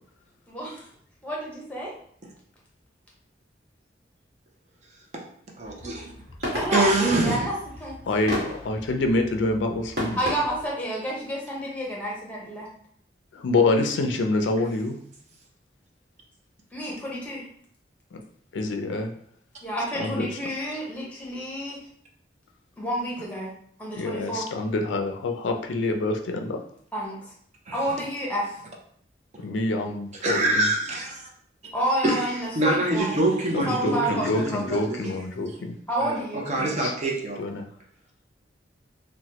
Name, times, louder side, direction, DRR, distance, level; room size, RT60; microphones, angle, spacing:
voice 1, 0.5-0.8 1.2-1.9 6.5-7.5 7.8-7.9 10.2-12.7 16.7-17.4 19.6-21.8 22.8-23.5 23.8-24.5 26.9-27.2 27.7-28.6 31.7-33.1 33.7-34.8 35.9-36.4, right 1 dB, 10° left, -5 dB, 0.8 m, -29 dB
voice 2, 5.6-6.1 6.7-7.4 27.7-27.8 30.2-31.3 32.0-32.2 32.6-35.0 36.0-37.4, right 2 dB, 40° right, 0 dB, 0.5 m, -25 dB
sound 1, 5.6-10.7, left 1 dB, 60° right, 1.2 m, -35 dB
voice 3, 8.0-10.2 13.3-15.0 18.1-18.2 18.5-19.1 20.0-20.3 24.0-26.6 29.4-30.7 33.5-35.7 36.8-36.9 37.4-37.6, left 2 dB, 85° left, 5 dB, 0.4 m, -26 dB
3.0 x 2.1 x 2.8 m, 0.63 s
head